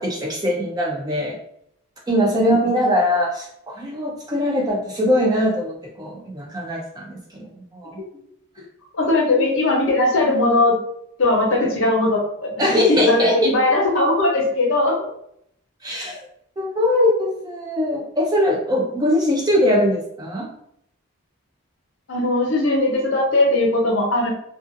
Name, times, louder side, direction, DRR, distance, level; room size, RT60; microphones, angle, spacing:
voice 1, 0.0-1.4 2.1-8.0 9.3-9.7 12.6-13.5 15.8-16.3 16.6-20.5, left 1 dB, 20° right, -1 dB, 0.4 m, -21 dB
voice 2, 8.9-10.8 11.2-15.1 16.0-16.1 22.1-24.3, left 2 dB, 60° left, -1 dB, 0.7 m, -19 dB
2.4 x 2.3 x 2.5 m, 0.71 s
head